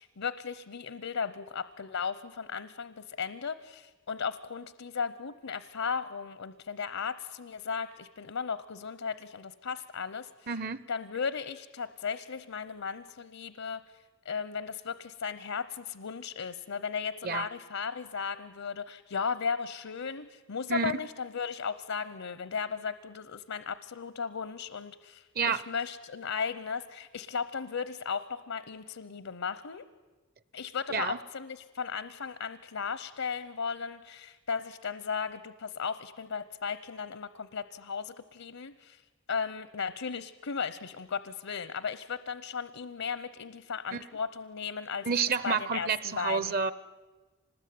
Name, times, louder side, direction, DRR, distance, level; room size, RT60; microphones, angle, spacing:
voice 1, 0.0-10.5 10.9-13.8 14.2-29.9 30.5-46.6, left 6 dB, 80° left, 15 dB, 0.8 m, -36 dB
voice 2, 10.5-10.8 17.2-17.5 20.7-20.9 25.3-25.6 30.9-31.2 43.9-44.0 45.1-46.7, right 5 dB, 45° right, 17 dB, 0.8 m, -29 dB
25.0 x 20.0 x 9.4 m, 1.3 s
head